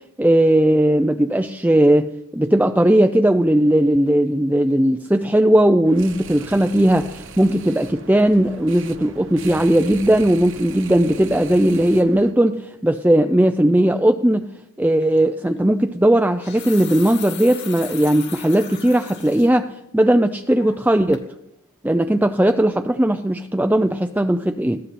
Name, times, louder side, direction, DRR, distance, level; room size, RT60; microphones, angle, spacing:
voice 1, 0.2-14.5 14.8-21.2 21.8-24.8, right 1 dB, 5° right, 6 dB, 0.5 m, -17 dB
sound 1, 5.8-12.3, right 5 dB, 60° right, 1.3 m, -40 dB
sound 2, 15.0-15.2 16.2-19.5 20.0-20.1 20.6-20.9 21.1-21.3, left 9 dB, 50° left, 2.6 m, -37 dB
20.5 x 16.0 x 4.3 m, 0.83 s
head